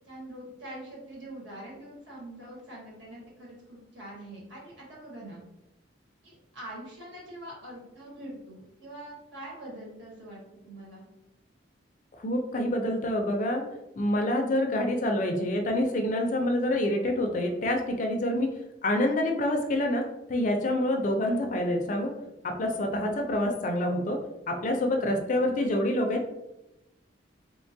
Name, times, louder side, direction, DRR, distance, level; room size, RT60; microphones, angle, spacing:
voice 1, 0.0-5.4 6.2-11.0, right 1 dB, 80° right, -5 dB, 1.2 m, -44 dB
voice 2, 12.2-13.6 14.0-18.5 18.8-20.0 20.3-22.1 22.4-24.2 24.5-26.3, left 1 dB, 40° left, 3 dB, 0.4 m, -27 dB
3.0 x 2.2 x 2.6 m, 0.92 s
head